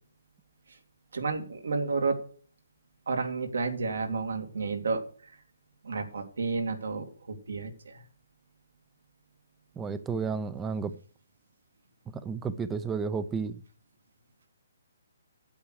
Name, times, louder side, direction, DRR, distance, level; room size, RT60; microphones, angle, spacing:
voice 1, 1.1-2.2 3.1-5.0 5.8-7.0 7.5-7.9, right 4 dB, 80° right, 5 dB, 2.5 m, -30 dB
voice 2, 9.8-10.9 12.2-13.6, right 5 dB, 10° right, 13 dB, 0.4 m, -32 dB
8.7 x 8.1 x 6.2 m, 0.43 s
hypercardioid pair, 170°, 0 cm